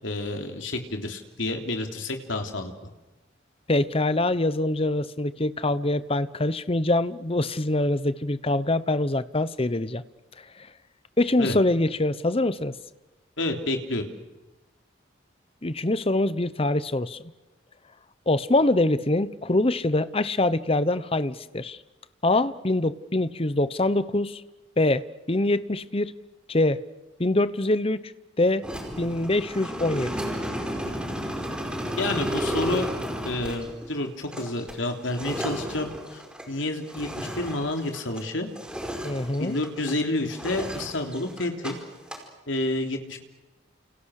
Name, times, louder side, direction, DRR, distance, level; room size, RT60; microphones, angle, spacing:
voice 1, 0.0-2.7 11.4-11.5 13.4-14.0 32.0-32.9 33.2-36.2 36.5-38.5 39.4-41.7 42.5-43.2, left 2 dB, 75° left, 4 dB, 3.5 m, -29 dB
voice 2, 3.7-10.0 11.2-12.8 15.6-17.2 18.3-21.8 22.2-24.4 24.8-26.1 26.5-26.8 27.2-28.0 28.4-28.6 29.0-30.1 39.0-39.5, left 2 dB, 30° left, 15 dB, 0.9 m, -24 dB
sound 1, 28.6-38.3 38.6-40.0 40.3-41.7 42.0-42.2, equal, 5° right, 5.1 m, -33 dB
30.0 x 29.0 x 6.6 m, 1.1 s
head